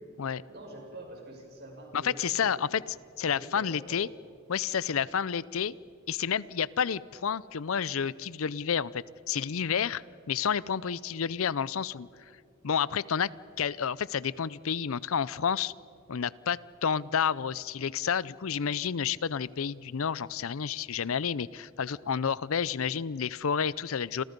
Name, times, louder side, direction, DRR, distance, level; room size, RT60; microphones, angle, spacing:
voice 1, 0.5-2.6 3.2-4.0, right 1 dB, 50° right, 1 dB, 6.1 m, -46 dB
voice 2, 1.9-2.8 3.2-4.1 4.5-5.7 6.1-12.1 12.6-13.3 13.6-15.7 16.1-24.2, left 7 dB, 75° left, 20 dB, 0.5 m, -30 dB
29.5 x 26.5 x 5.3 m, 2.4 s
head